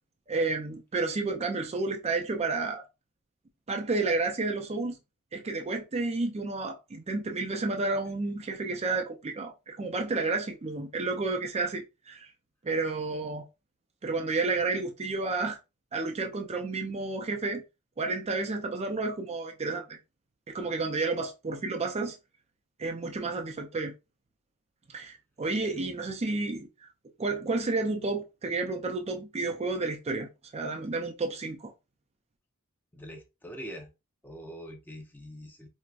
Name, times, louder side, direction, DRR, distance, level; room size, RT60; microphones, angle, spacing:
voice 1, 0.3-2.8 3.7-5.0 5.3-12.3 12.6-13.4 14.0-15.6 15.9-17.6 18.0-20.0 20.5-22.2 22.8-23.9 24.9-26.9 27.2-31.7, right 3 dB, 30° right, 0.4 m, -31 dB
voice 2, 32.9-33.9 34.2-35.7, equal, 10° left, 0.6 m, -43 dB
4.6 x 2.1 x 2.4 m
head